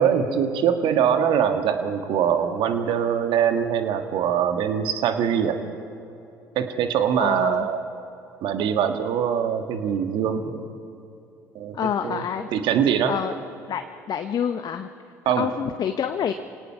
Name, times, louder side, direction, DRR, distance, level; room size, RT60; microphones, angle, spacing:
voice 1, 0.0-5.6 6.5-7.8 8.4-10.6 11.5-11.8 12.0-12.2 12.5-13.1 15.2-15.5, right 8 dB, 60° right, 7 dB, 1.7 m, -23 dB
voice 2, 7.2-7.7 11.7-12.5 13.1-13.3 13.7-14.9 15.2-16.3, left 8 dB, 45° left, 8 dB, 0.9 m, -27 dB
27.5 x 18.0 x 5.7 m, 2.8 s
hypercardioid pair, 60°, 10 cm